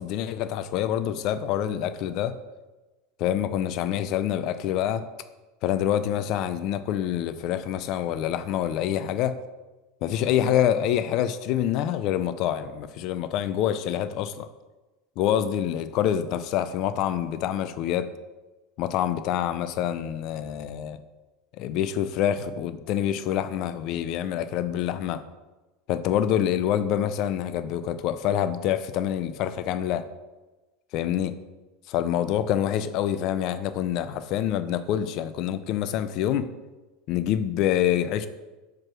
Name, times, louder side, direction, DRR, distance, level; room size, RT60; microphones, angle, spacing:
voice 1, 0.0-2.3 3.2-5.0 5.6-9.4 10.0-14.5 15.2-18.1 18.8-21.0 21.6-25.2 25.9-30.0 30.9-31.3 31.9-36.5 37.1-38.3, left 10 dB, 55° left, 12 dB, 0.5 m, -26 dB
4.8 x 4.7 x 6.1 m, 1.2 s
supercardioid pair, 125°, 0 cm